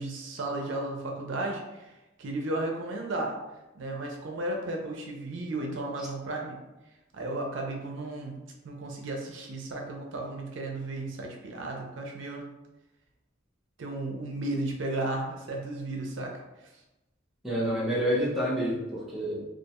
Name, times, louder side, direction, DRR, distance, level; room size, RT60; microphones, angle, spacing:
voice 1, 0.0-1.9 2.2-3.3 3.7-6.6 7.1-8.4 8.6-12.5 13.8-16.4, right 2 dB, 75° right, 1 dB, 0.4 m, -34 dB
voice 2, 17.4-19.4, equal, ahead, -9 dB, 0.6 m, -28 dB
2.3 x 2.3 x 2.8 m, 1.0 s
head